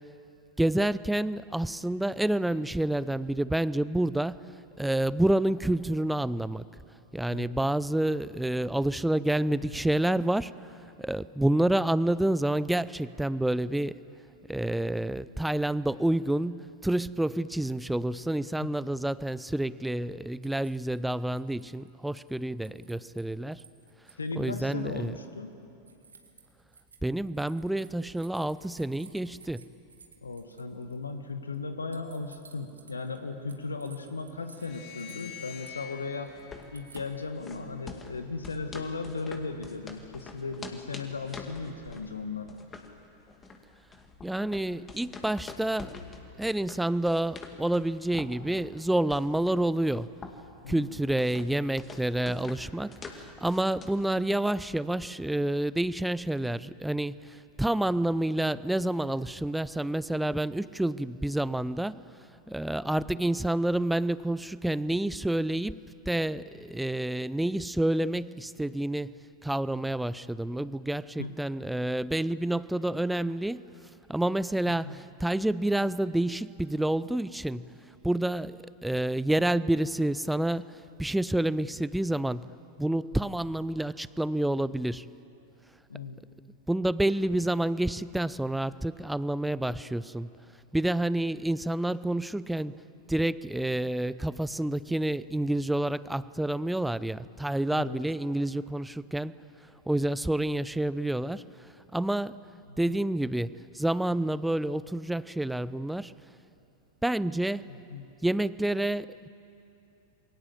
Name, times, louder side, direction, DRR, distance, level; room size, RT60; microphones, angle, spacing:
voice 1, 0.6-4.5 4.8-6.7 7.1-10.5 11.0-14.0 14.5-23.6 24.4-25.2 27.0-29.7 44.2-45.9 46.4-50.1 50.7-62.0 62.5-69.1 69.4-73.7 74.1-77.7 78.0-82.5 82.8-85.1 86.7-90.3 90.7-92.7 93.1-99.3 99.9-101.5 101.9-102.4 102.8-106.1 107.0-107.7 108.2-109.3, right 1 dB, 5° right, 18 dB, 0.5 m, -28 dB
voice 2, 7.3-7.7 18.6-18.7 24.2-25.5 30.2-36.3 36.7-42.5 50.6-50.9 71.2-71.3 74.6-75.0 85.9-86.2 97.7-98.0 102.7-103.0 107.7-108.1, left 4 dB, 75° left, 8 dB, 1.5 m, -37 dB
sound 1, 20.4-21.0 21.4-23.2 23.5-24.5 25.1-25.2 25.9-31.1 31.5-31.6 31.9-33.2 33.5-37.1, right 5 dB, 75° right, 2.1 m, -55 dB
sound 2, 34.5-37.8, left 9 dB, 50° left, 4.1 m, -47 dB
sound 3, 36.3-54.1, left 4 dB, 20° left, 2.3 m, -46 dB
28.0 x 23.0 x 7.6 m, 2.8 s
figure-of-eight pair, 90°, 0 cm